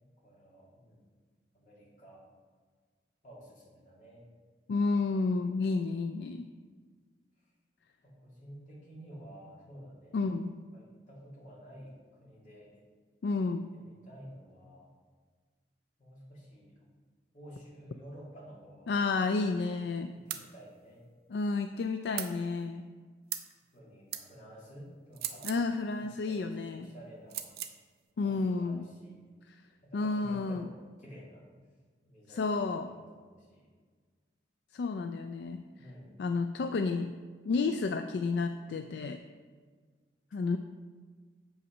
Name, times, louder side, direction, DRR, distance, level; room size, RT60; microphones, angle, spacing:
voice 1, 0.2-1.0 1.5-2.2 3.2-4.3 8.0-10.2 10.7-12.8 13.5-14.9 16.0-16.7 17.3-19.0 20.1-21.1 23.7-25.5 26.0-27.4 28.2-29.2 29.8-31.5 32.0-33.7 35.8-36.2, equal, 45° left, -6 dB, 2.6 m, -51 dB
voice 2, 4.7-6.5 10.1-10.5 13.2-13.7 18.9-20.1 21.3-22.9 25.4-26.9 28.2-28.8 29.9-30.7 32.3-32.9 34.7-35.6 36.2-37.1 37.5-39.2 40.3-40.6, left 3 dB, 70° left, 8 dB, 0.3 m, -31 dB
sound 1, 20.3-20.5 22.2-22.3 23.3-23.5 24.1-24.3 25.1-25.6 27.3-27.8, right 11 dB, 60° right, 0.5 m, -38 dB
7.2 x 5.6 x 5.3 m, 1.5 s
head